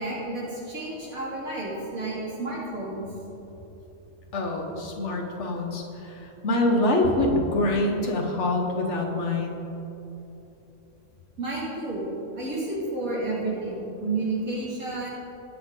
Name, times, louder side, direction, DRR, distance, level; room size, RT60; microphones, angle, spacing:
voice 1, 0.0-3.0 11.4-12.0 12.3-15.1, right 2 dB, 75° right, -7 dB, 3.1 m, -31 dB
voice 2, 4.3-9.6, left 2 dB, 55° left, 1 dB, 1.6 m, -25 dB
19.0 x 6.4 x 3.8 m, 3.0 s
omnidirectional pair, 1.5 m